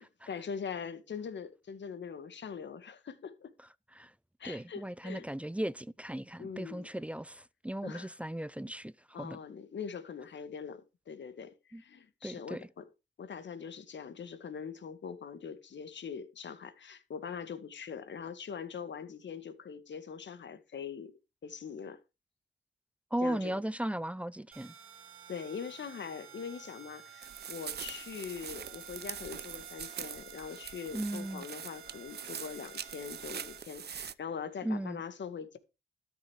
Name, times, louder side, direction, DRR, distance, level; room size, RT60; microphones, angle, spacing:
voice 1, 0.0-3.5 4.4-5.3 6.4-6.9 7.8-8.2 9.1-12.9 13.2-21.1 21.4-22.0 23.2-23.6 25.3-35.6, left 6 dB, 60° left, 2.1 m, -42 dB
voice 2, 4.4-9.4 11.7-11.8 12.2-12.7 23.1-24.7 30.9-31.4 34.6-35.0, right 1 dB, 5° right, 0.5 m, -36 dB
sound 1, 24.5-33.6, right 9 dB, 85° right, 2.1 m, -52 dB
sound 2, 27.2-34.1, right 8 dB, 55° right, 0.8 m, -43 dB
13.0 x 7.1 x 4.9 m
cardioid pair, 90°, 21 cm